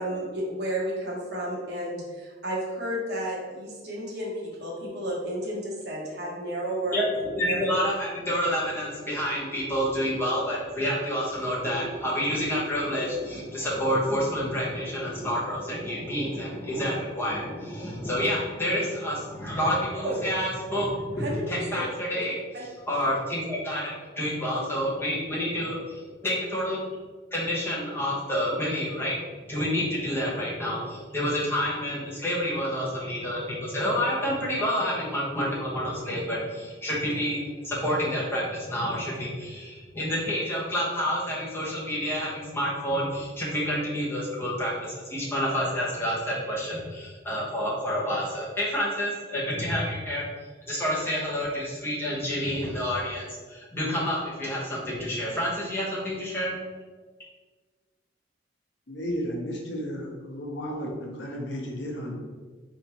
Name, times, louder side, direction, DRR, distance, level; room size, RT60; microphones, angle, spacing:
voice 1, 0.0-7.0 7.4-7.6 20.0-20.2 21.2-21.8 22.1-22.6, right 1 dB, 60° right, -4 dB, 1.1 m, -32 dB
voice 2, 6.9-22.4 22.9-26.8 27.3-29.2 29.5-50.2 50.7-56.5, equal, 15° left, -6 dB, 0.9 m, -29 dB
voice 3, 58.9-62.1, equal, 75° left, 0 dB, 0.8 m, -33 dB
3.9 x 3.4 x 2.9 m, 1.4 s
head